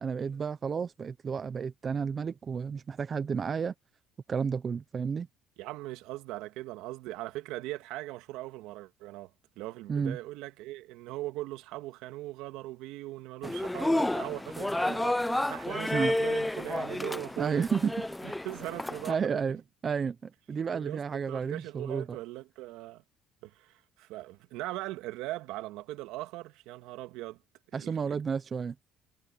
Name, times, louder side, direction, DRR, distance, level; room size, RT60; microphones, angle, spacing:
voice 1, 0.0-3.7 4.3-5.3 9.9-10.2 14.9-15.0 15.9-16.1 17.4-17.9 19.1-22.2 27.7-28.7, right 6 dB, 40° right, 0.9 m, -31 dB
voice 2, 5.6-17.7 18.2-19.4 20.6-23.0 23.4-27.4 27.7-28.2, right 17 dB, 80° right, 2.1 m, -40 dB
sound 1, 13.4-19.1, left 1 dB, 10° left, 0.7 m, -31 dB
supercardioid pair, 75°, 0 cm